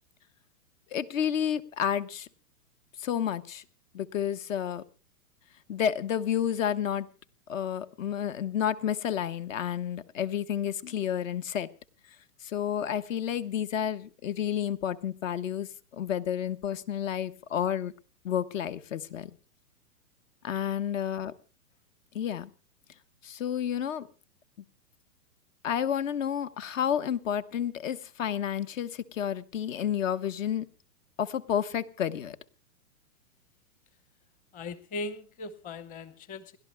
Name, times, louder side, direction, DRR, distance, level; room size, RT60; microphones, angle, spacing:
voice 1, 0.9-2.3 3.0-3.6 3.9-4.8 5.7-7.1 7.5-11.7 12.4-17.9 18.2-19.3 20.4-21.3 22.1-22.5 23.2-24.1 25.6-30.7 31.2-32.4, left 9 dB, 60° left, 14 dB, 1.3 m, -30 dB
voice 2, 34.5-36.6, left 2 dB, 20° left, 14 dB, 1.0 m, -39 dB
30.0 x 12.0 x 2.2 m, 0.34 s
hypercardioid pair, 135°, 44 cm